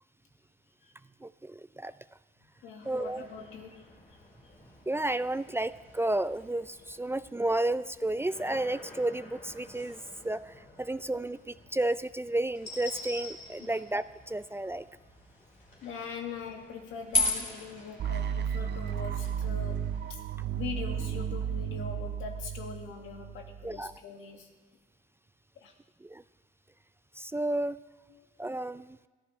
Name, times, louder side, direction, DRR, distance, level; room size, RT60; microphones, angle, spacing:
voice 1, 1.2-1.9 2.9-3.2 4.9-10.0 10.2-14.9 23.6-23.9 26.0-26.2 27.2-27.8 28.4-29.0, right 1 dB, 10° right, 14 dB, 0.4 m, -32 dB
voice 2, 2.6-4.5 13.6-13.8 15.8-20.2 20.5-24.5 25.6-25.7 28.1-28.3, left 6 dB, 85° left, 2 dB, 2.0 m, -42 dB
sound 1, 2.8-20.1, left 2 dB, 45° left, 4.6 m, -41 dB
sound 2, 18.0-23.9, right 8 dB, 60° right, 0.7 m, -34 dB
22.0 x 14.0 x 3.2 m, 1.3 s
cardioid pair, 90°, 20 cm